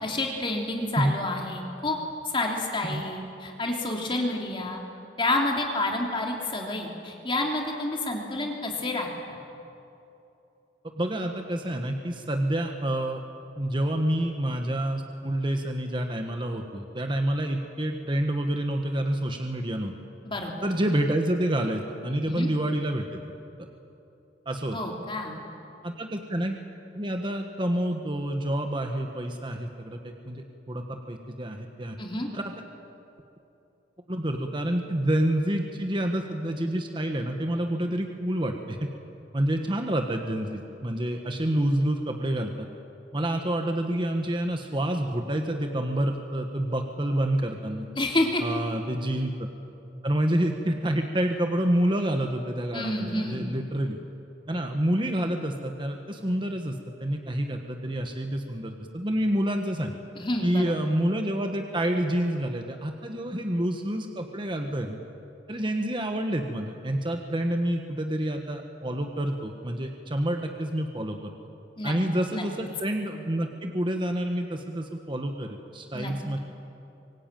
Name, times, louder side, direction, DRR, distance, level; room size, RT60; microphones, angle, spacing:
voice 1, 0.0-2.0 2.2-4.8 5.2-9.1 20.2-20.5 22.3-22.5 24.7-25.4 32.0-32.3 48.0-48.4 52.7-53.5 60.1-60.7 71.8-72.0 72.3-72.4 75.9-76.1, left 2 dB, 30° left, 0 dB, 3.0 m, -29 dB
voice 2, 11.0-13.2 13.6-19.9 20.6-23.2 24.4-24.8 25.8-26.6 26.9-32.0 32.3-32.5 34.1-38.9 39.3-42.7 43.1-47.9 48.4-49.3 50.0-54.0 54.5-59.9 60.4-65.0 65.5-71.3 71.8-76.4, right 1 dB, 25° right, 4 dB, 1.3 m, -28 dB
25.0 x 22.0 x 9.1 m, 2.8 s
head